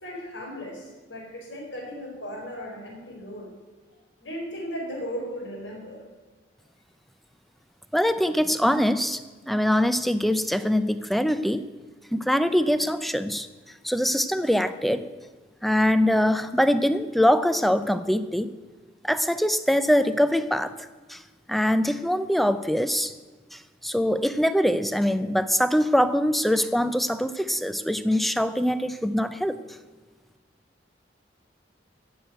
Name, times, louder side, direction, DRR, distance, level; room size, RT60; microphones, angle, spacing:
voice 1, 0.0-3.5 4.2-6.0, equal, 80° left, 0 dB, 4.6 m, -36 dB
voice 2, 7.9-9.2 9.5-11.7 12.1-13.5 13.8-15.0 15.6-18.5 19.0-21.2 21.5-23.1 23.5-29.6, equal, ahead, 12 dB, 0.5 m, -23 dB
14.5 x 6.2 x 9.2 m, 1.3 s
head